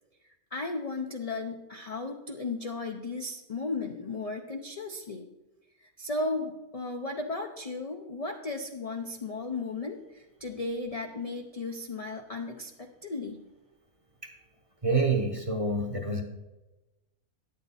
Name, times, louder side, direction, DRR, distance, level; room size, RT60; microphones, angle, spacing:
voice 1, 0.5-5.3 5.8-13.4, left 3 dB, 60° left, 3 dB, 0.3 m, -35 dB
voice 2, 14.8-16.2, right 3 dB, 30° right, 3 dB, 0.8 m, -27 dB
10.0 x 8.4 x 4.1 m, 1.1 s
omnidirectional pair, 1.6 m